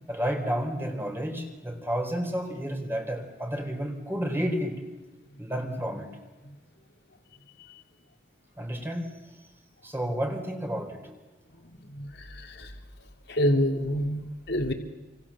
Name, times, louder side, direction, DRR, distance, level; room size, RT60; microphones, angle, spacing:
voice 1, 0.1-4.8 5.4-6.1 8.6-9.2 9.8-11.1, equal, 10° right, 4 dB, 4.1 m, -31 dB
voice 2, 11.9-12.7 13.3-14.7, equal, 60° left, 4 dB, 2.7 m, -27 dB
28.5 x 26.0 x 7.3 m, 1.2 s
head